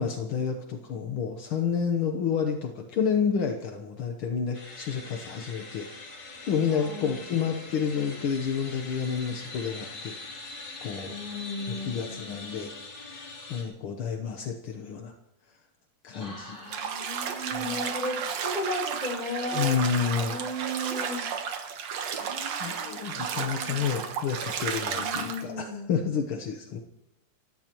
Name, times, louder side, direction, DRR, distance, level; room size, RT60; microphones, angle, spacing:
voice 1, 0.0-5.9 6.4-10.2 10.8-11.1 11.7-15.1 16.0-16.6 17.5-17.6 19.5-20.4 22.0-22.3 22.6-26.8, left 7 dB, 65° left, 4 dB, 1.3 m, -30 dB
sound 1, 4.5-13.6, left 3 dB, 40° left, 3.9 m, -43 dB
voice 2, 6.7-7.3 11.1-12.3 16.1-19.8 20.3-21.2 22.2-24.0 24.9-25.9, left 1 dB, 15° left, -3 dB, 5.4 m, -36 dB
Bathtub (filling or washing), 16.7-25.4, right 7 dB, 65° right, 2.3 m, -33 dB
28.0 x 16.0 x 3.0 m, 0.87 s
omnidirectional pair, 3.5 m